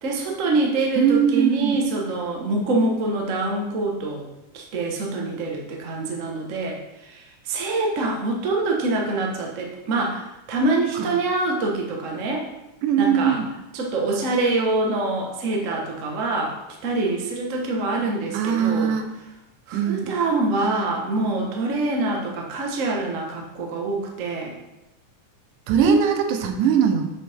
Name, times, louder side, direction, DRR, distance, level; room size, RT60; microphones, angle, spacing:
voice 1, 0.0-4.2 4.5-6.8 7.5-10.2 10.5-12.4 13.0-13.4 13.7-16.5 16.8-18.9 19.7-24.5 25.8-26.0, right 2 dB, 65° right, 0 dB, 0.7 m, -25 dB
voice 2, 1.0-1.8 10.9-11.2 12.8-13.5 18.3-19.1 19.7-20.2 25.7-27.1, right 8 dB, 85° right, 6 dB, 2.4 m, -21 dB
8.3 x 6.5 x 3.5 m, 0.95 s
omnidirectional pair, 3.6 m